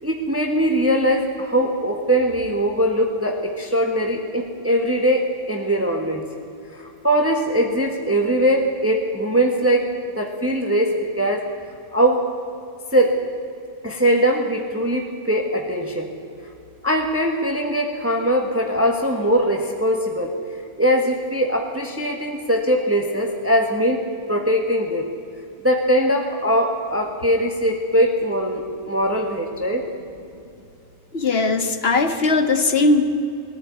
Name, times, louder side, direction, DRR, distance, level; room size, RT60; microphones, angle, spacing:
voice 1, 0.0-6.2 6.7-9.9 10.2-11.5 11.9-12.2 12.9-13.2 13.8-16.1 16.8-20.3 20.8-25.1 25.6-29.9, equal, 10° right, 2 dB, 1.6 m, -21 dB
voice 2, 31.1-33.0, left 3 dB, 40° left, 8 dB, 1.7 m, -19 dB
21.5 x 15.0 x 9.6 m, 2.6 s
omnidirectional pair, 1.6 m